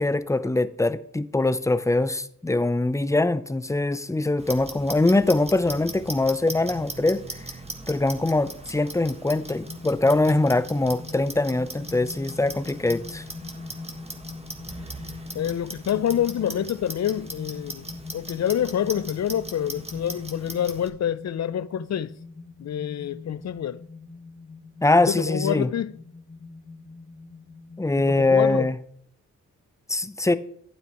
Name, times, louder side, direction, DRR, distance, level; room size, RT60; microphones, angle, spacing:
voice 1, 0.0-7.2 7.9-13.2 24.8-25.7 27.8-28.8 29.9-30.3, left 2 dB, 10° left, 0.6 m, -23 dB
Clock, 4.4-20.9, right 2 dB, 20° right, 1.5 m, -40 dB
sound 1, 9.3-28.7, left 4 dB, 30° left, 2.1 m, -42 dB
voice 2, 15.3-22.1 22.6-23.8 25.0-25.9 28.0-28.7, left 10 dB, 55° left, 0.5 m, -27 dB
12.0 x 9.1 x 3.0 m
cardioid pair, 55°, 33 cm